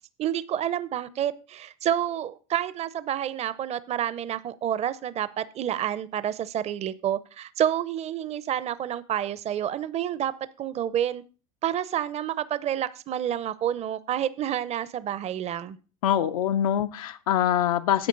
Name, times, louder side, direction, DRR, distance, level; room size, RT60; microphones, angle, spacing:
voice 1, 0.2-11.2 11.6-15.8, right 10 dB, 40° right, 16 dB, 0.7 m, -29 dB
voice 2, 16.0-18.1, left 10 dB, 85° left, 7 dB, 0.6 m, -24 dB
11.5 x 7.9 x 3.9 m, 0.37 s
hypercardioid pair, 85°, 18 cm